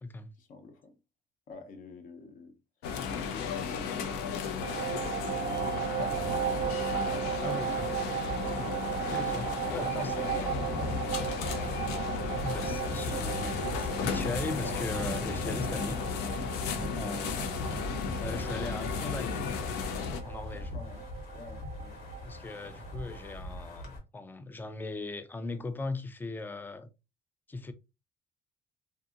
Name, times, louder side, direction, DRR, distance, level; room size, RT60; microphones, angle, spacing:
voice 1, 0.4-1.0 1.5-2.6 3.1-5.8 7.4-7.6 8.6-8.8 10.2-11.3 16.8-17.4 20.5-21.0 21.3-22.0, left 4 dB, 55° left, 0.7 m, -48 dB
sound 1, 2.8-20.2, left 6 dB, 90° left, 0.4 m, -35 dB
sound 2, 4.6-23.2, right 11 dB, 55° right, 0.4 m, -36 dB
Wind, 5.5-24.0, left 1 dB, 70° left, 1.0 m, -40 dB
voice 2, 7.4-7.9 9.0-10.6 12.4-16.0 16.9-17.5 18.2-19.4 20.2-20.7 22.2-26.9 27.5-27.7, left 3 dB, 10° left, 0.3 m, -39 dB
2.6 x 2.6 x 2.4 m
cardioid pair, 110°, 17 cm